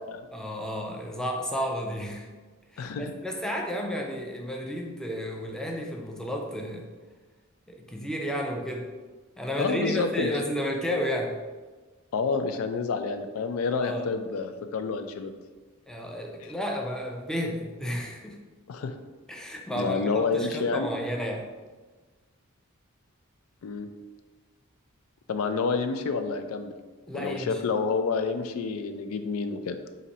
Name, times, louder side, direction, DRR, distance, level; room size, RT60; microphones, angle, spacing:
voice 1, 0.3-2.3 2.7-6.9 7.7-9.0 9.4-11.4 13.8-14.1 15.9-18.4 19.3-21.5 27.1-27.6, equal, 5° left, 0 dB, 0.4 m, -32 dB
voice 2, 2.8-3.1 9.6-10.3 12.1-15.3 16.4-16.5 18.7-18.9 19.8-20.9 23.6-23.9 25.3-26.7 27.1-29.8, left 4 dB, 80° left, 8 dB, 0.4 m, -29 dB
4.0 x 2.6 x 4.1 m, 1.3 s
head